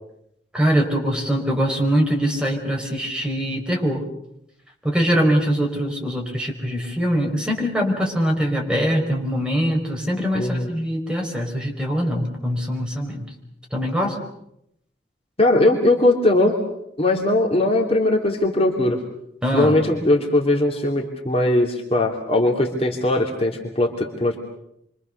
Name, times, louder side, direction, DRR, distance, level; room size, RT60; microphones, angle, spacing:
voice 1, 0.5-4.0 4.8-13.3 13.7-14.2 19.4-19.8, equal, 5° right, 0 dB, 5.1 m, -22 dB
voice 2, 10.3-10.7 15.4-16.6 17.0-19.0 19.5-24.4, left 1 dB, 35° left, 1 dB, 2.9 m, -19 dB
28.0 x 24.5 x 6.7 m, 0.77 s
head